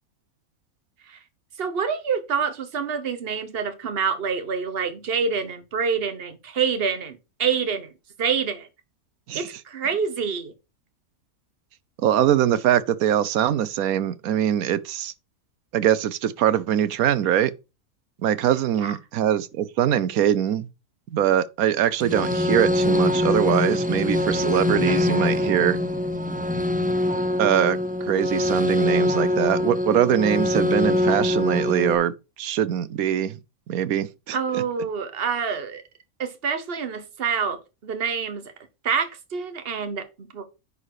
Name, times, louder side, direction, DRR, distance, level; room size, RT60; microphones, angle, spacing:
voice 1, 1.6-7.9 8.2-8.7 9.3-10.5 18.8-18.9 34.3-35.8 36.2-38.4 38.8-40.4, right 6 dB, 45° right, 1.4 m, -27 dB
voice 2, 12.0-15.1 15.7-17.5 18.2-20.7 21.1-25.8 27.4-33.4 33.7-34.6, right 10 dB, 85° right, 1.2 m, -22 dB
sound 1, 22.0-31.9, left 1 dB, 10° right, 0.5 m, -23 dB
9.9 x 4.3 x 4.8 m
omnidirectional pair, 1.5 m